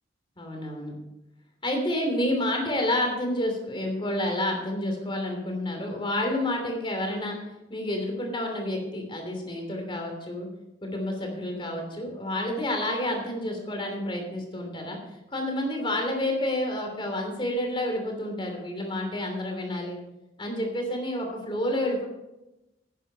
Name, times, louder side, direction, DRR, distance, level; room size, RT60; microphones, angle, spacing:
voice 1, 0.4-1.0 1.6-7.4 7.7-10.5 10.8-15.0 15.3-20.0 20.4-22.1, left 1 dB, 30° left, 2 dB, 2.9 m, -29 dB
10.0 x 10.0 x 5.1 m, 0.93 s
head